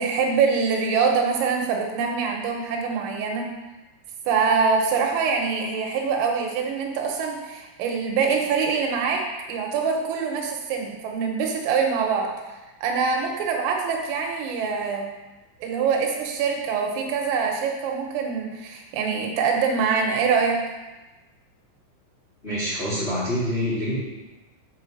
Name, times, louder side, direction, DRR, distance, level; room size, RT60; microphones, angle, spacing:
voice 1, 0.0-3.5 4.3-12.3 12.8-15.1 15.6-20.6, right 5 dB, 85° right, 1 dB, 3.7 m, -24 dB
voice 2, 22.4-24.0, equal, 15° left, -11 dB, 2.8 m, -26 dB
7.7 x 6.2 x 6.2 m, 1.1 s
omnidirectional pair, 6.0 m